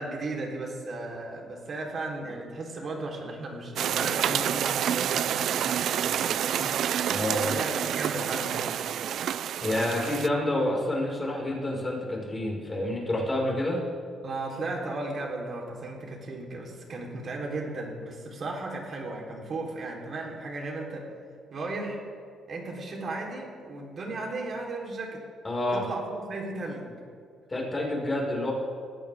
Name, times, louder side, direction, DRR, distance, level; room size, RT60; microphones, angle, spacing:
voice 1, 0.0-6.7 7.3-8.8 14.2-21.1 21.5-22.0 22.5-25.2 25.7-27.0, right 2 dB, 50° right, -1 dB, 3.8 m, -35 dB
sound 1, 3.8-10.3, right 10 dB, 70° right, 0.4 m, -28 dB
voice 2, 7.1-7.5 9.6-13.8 25.4-25.8 27.5-28.5, left 1 dB, 20° left, -2 dB, 5.4 m, -28 dB
20.5 x 17.0 x 3.7 m, 2.2 s
cardioid pair, 90°, 0 cm